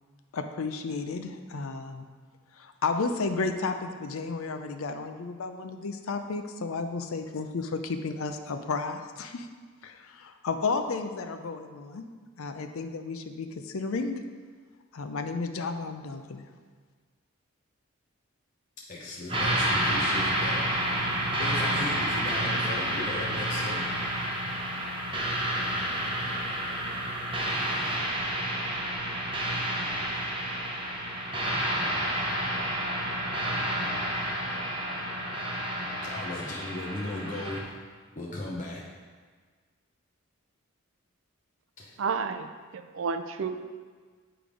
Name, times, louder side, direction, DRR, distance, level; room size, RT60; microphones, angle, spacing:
voice 1, 0.3-2.1 2.5-9.5 9.8-12.0 12.4-14.2 14.9-16.5, left 4 dB, 80° left, 7 dB, 0.5 m, -32 dB
voice 2, 18.9-23.8 36.0-37.6 38.2-38.8 41.8-42.0, left 2 dB, 35° left, -4 dB, 0.7 m, -37 dB
sound 1, 19.3-37.6, right 1 dB, 25° right, 0.7 m, -29 dB
voice 3, 42.0-43.6, right 5 dB, 65° right, 9 dB, 0.4 m, -31 dB
8.8 x 3.4 x 5.0 m, 1.5 s
head